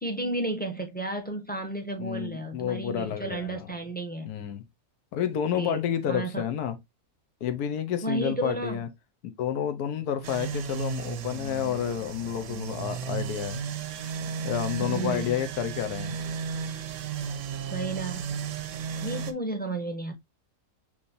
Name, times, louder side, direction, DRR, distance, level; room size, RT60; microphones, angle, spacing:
voice 1, 0.0-4.3 5.5-5.8 6.1-6.4 8.0-8.8 14.8-15.4 17.7-18.4 19.0-20.1, right 2 dB, 10° left, 0.5 m, -32 dB
voice 2, 2.0-3.7 4.3-4.6 5.1-6.8 7.4-8.9 9.4-13.6 14.4-16.1, left 9 dB, 85° left, 1.3 m, -30 dB
sound 1, 10.2-19.3, right 7 dB, 65° right, 0.9 m, -34 dB
5.9 x 3.2 x 2.6 m
omnidirectional pair, 1.6 m